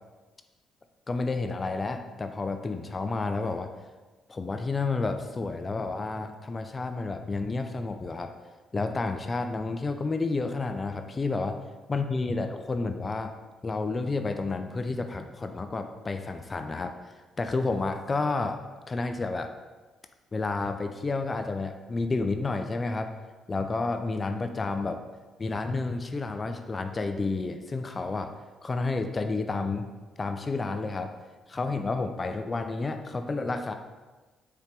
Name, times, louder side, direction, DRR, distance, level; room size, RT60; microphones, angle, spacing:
voice 1, 1.1-3.7 4.3-8.3 8.7-11.6 11.9-13.3 13.6-17.0 17.4-18.6 18.9-19.5 20.3-23.1 23.5-25.0 25.4-28.3 28.6-29.9 30.2-31.1 31.5-33.7, left 3 dB, 35° left, 7 dB, 0.3 m, -30 dB
4.7 x 3.3 x 3.3 m, 1.3 s
hypercardioid pair, 55°, 0 cm